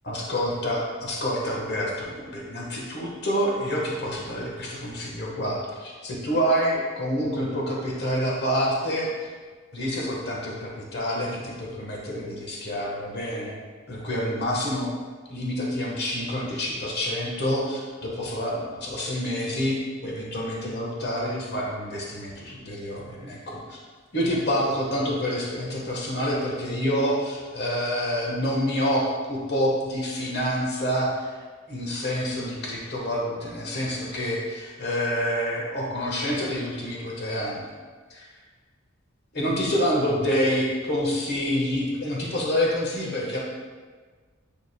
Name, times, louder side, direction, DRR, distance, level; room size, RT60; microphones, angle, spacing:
voice 1, 0.0-9.1 9.7-13.6 13.9-14.9 15.3-23.8 24.1-31.3 31.7-37.7 38.1-38.3 39.3-43.4, equal, 55° left, -3 dB, 1.3 m, -27 dB
9.6 x 5.2 x 2.2 m, 1.5 s
head